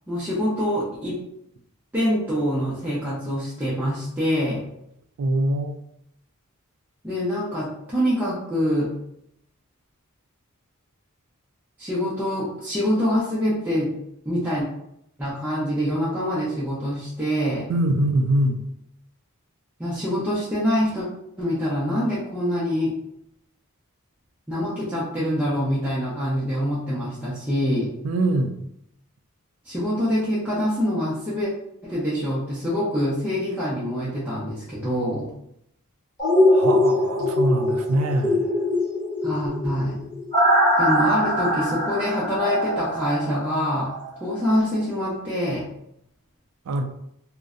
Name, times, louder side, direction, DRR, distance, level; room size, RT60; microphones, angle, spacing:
voice 1, 0.1-1.2 1.9-4.7 7.0-9.0 11.8-13.9 14.3-14.7 15.2-17.7 19.8-21.1 21.4-23.0 24.5-27.9 29.6-31.5 31.8-35.3 39.2-40.1 40.8-45.7, equal, 10° right, 0.5 m, -25 dB
voice 2, 5.2-5.8 17.7-18.6 28.0-28.6 36.5-38.5 46.7-46.8, right 1 dB, 70° right, 0.3 m, -23 dB
sound 1, 36.2-44.1 44.4-44.5, left 1 dB, 15° left, 0.8 m, -22 dB
2.5 x 2.1 x 2.3 m
head